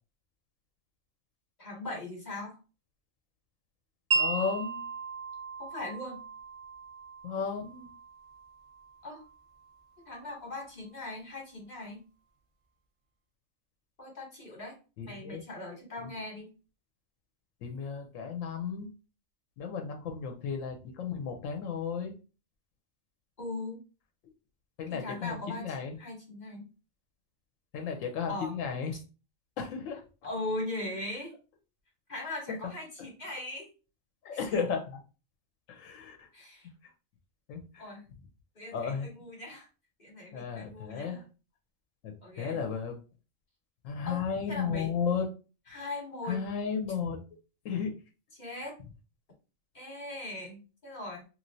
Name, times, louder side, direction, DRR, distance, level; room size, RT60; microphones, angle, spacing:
voice 1, 1.6-2.6 5.6-6.2 9.0-9.2 10.1-12.0 14.0-14.8 15.1-16.5 23.4-23.8 24.9-26.7 28.3-28.5 30.2-31.3 32.1-33.7 34.5-34.6 36.3-36.7 37.8-38.1 38.5-39.7 40.0-41.2 42.2-42.6 44.0-44.2 44.5-44.9 45.7-46.4 48.3-48.8 49.7-51.2, left 2 dB, 40° left, -1 dB, 1.0 m, -39 dB
voice 2, 4.1-4.8 7.2-7.9 15.0-15.4 16.0-16.1 17.6-18.9 19.6-22.1 24.8-26.0 27.7-29.0 29.6-30.0 32.5-32.6 34.2-35.0 35.7-36.3 37.5-37.9 38.7-39.1 40.3-41.2 42.0-43.0 43.8-45.2 46.2-47.2 47.6-47.9, left 6 dB, 90° left, 3 dB, 1.0 m, -34 dB
Wind chime, 4.1-10.2, right 4 dB, 55° right, 0.6 m, -36 dB
3.1 x 2.7 x 2.6 m, 0.33 s
omnidirectional pair, 1.3 m